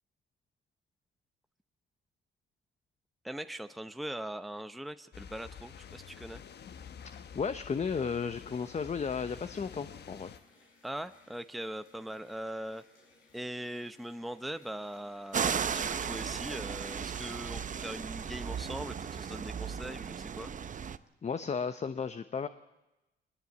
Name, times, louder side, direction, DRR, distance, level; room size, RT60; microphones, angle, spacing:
voice 1, 3.2-6.4 10.8-12.8 13.3-20.5, right 1 dB, ahead, 10 dB, 0.8 m, -41 dB
sound 1, 5.1-10.4, left 7 dB, 55° left, 1.2 m, -48 dB
voice 2, 7.3-10.3 21.2-22.5, left 6 dB, 35° left, 11 dB, 0.9 m, -34 dB
sound 2, 10.1-18.1, left 3 dB, 85° left, 6.5 m, -63 dB
sound 3, 15.3-21.0, right 7 dB, 40° right, 0.9 m, -35 dB
21.0 x 20.5 x 8.5 m, 0.98 s
cardioid pair, 90°, 20 cm